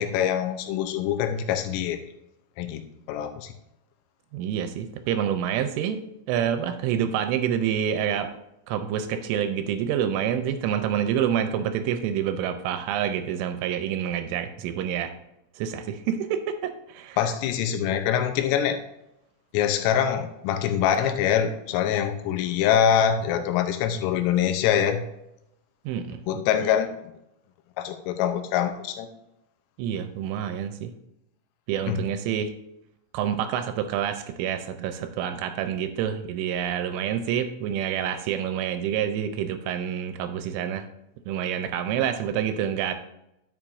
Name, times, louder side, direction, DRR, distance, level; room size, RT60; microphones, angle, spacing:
voice 1, 0.0-2.0 2.6-3.5 17.2-18.8 19.5-25.1 26.3-27.0 27.8-29.1 31.9-32.0, left 9 dB, 90° left, 6 dB, 3.4 m, -24 dB
voice 2, 4.3-6.0 6.3-8.3 8.7-15.1 15.6-17.2 25.9-26.4 29.8-30.9 31.7-32.5 33.1-40.8 41.3-42.9, right 9 dB, 85° right, 8 dB, 3.0 m, -27 dB
11.0 x 7.2 x 2.6 m, 0.83 s
omnidirectional pair, 5.8 m